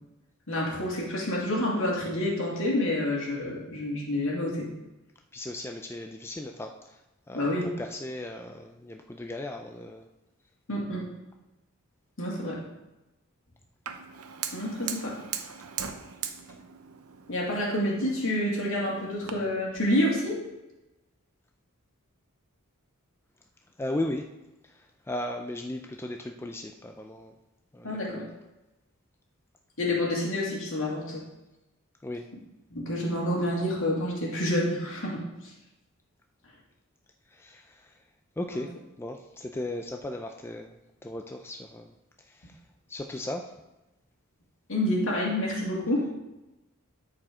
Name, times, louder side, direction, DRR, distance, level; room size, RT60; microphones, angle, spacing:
voice 1, 0.5-4.7 7.3-7.7 10.7-11.1 12.2-12.6 14.5-15.1 17.3-20.4 27.8-28.2 29.8-31.2 32.7-35.5 38.5-38.7 44.7-46.1, left 1 dB, 65° left, -3 dB, 2.4 m, -28 dB
voice 2, 5.3-7.0 7.3-10.1 23.8-24.3 24.6-27.3 27.7-28.3 32.0-32.3 37.3-38.0 38.4-38.7 39.0-40.7 41.0-41.9 42.3-42.6 42.9-43.5, left 1 dB, 10° left, 3 dB, 0.4 m, -36 dB
Fire, 13.9-19.3, right 8 dB, 80° right, 0.7 m, -39 dB
13.0 x 4.9 x 3.7 m, 1.0 s
head